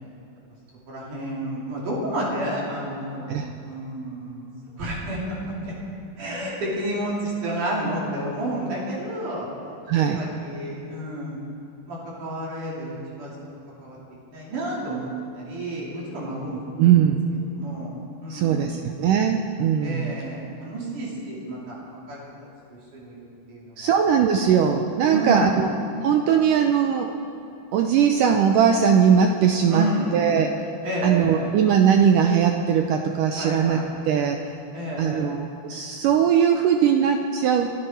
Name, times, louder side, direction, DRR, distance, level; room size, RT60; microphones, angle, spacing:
voice 1, 0.9-4.5 4.8-5.4 5.6-5.7 6.2-9.5 9.9-11.4 11.9-13.3 13.8-14.0 14.3-16.9 17.5-17.9 18.2-18.7 19.8-22.2 22.9-24.0 25.1-25.6 29.7-30.2 30.8-31.5 33.3-33.8 34.7-35.3, right 1 dB, 55° right, -5 dB, 4.2 m, -30 dB
voice 2, 9.9-10.2 16.8-17.2 18.3-20.1 23.8-25.7 26.0-27.1 27.7-29.9 30.1-30.5 31.0-33.8 34.1-34.4 35.0-37.7, right 8 dB, 85° right, 4 dB, 1.9 m, -20 dB
28.0 x 11.0 x 4.4 m, 2.8 s
omnidirectional pair, 4.5 m